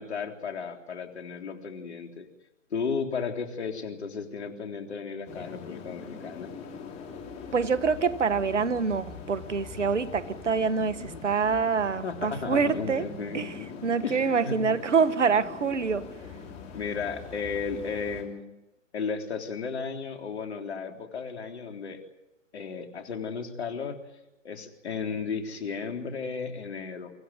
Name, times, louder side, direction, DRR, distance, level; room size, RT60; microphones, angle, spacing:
voice 1, 0.0-2.3 2.7-6.5 11.0-11.2 12.0-13.6 14.0-14.6 16.7-18.5 18.9-22.0 22.5-24.0 24.4-27.1, left 5 dB, 55° left, 3.7 m, -34 dB
sound 1, 5.3-18.2, left 5 dB, 15° left, 3.2 m, -42 dB
voice 2, 7.5-13.0 13.3-13.6 13.8-16.1, right 5 dB, 65° right, 1.4 m, -26 dB
24.5 x 16.0 x 9.3 m
figure-of-eight pair, 135°, 39 cm